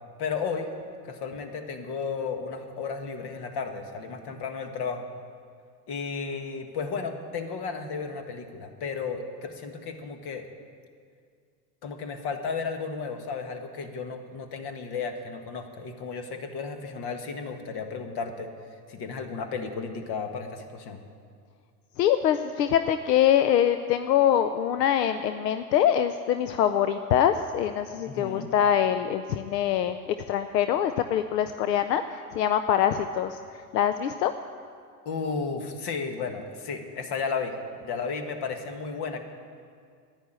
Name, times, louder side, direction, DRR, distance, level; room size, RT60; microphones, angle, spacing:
voice 1, 0.2-0.7 1.1-5.1 5.9-10.5 11.8-18.5 18.9-21.0 28.1-28.5 35.1-37.6 37.8-39.2, left 5 dB, 50° left, 6 dB, 1.7 m, -33 dB
voice 2, 22.0-33.4 33.7-34.3, left 10 dB, 80° left, 10 dB, 0.7 m, -24 dB
11.5 x 9.9 x 8.9 m, 2.2 s
hypercardioid pair, 80°, 48 cm